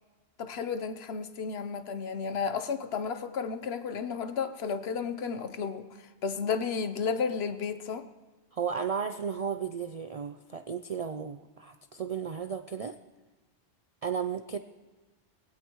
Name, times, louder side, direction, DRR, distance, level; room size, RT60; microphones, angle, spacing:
voice 1, 0.4-5.9 6.2-8.1, left 6 dB, 65° left, 1.0 m, -32 dB
voice 2, 8.5-13.0 14.0-14.6, right 7 dB, 60° right, 0.4 m, -34 dB
22.0 x 16.5 x 3.0 m
omnidirectional pair, 1.2 m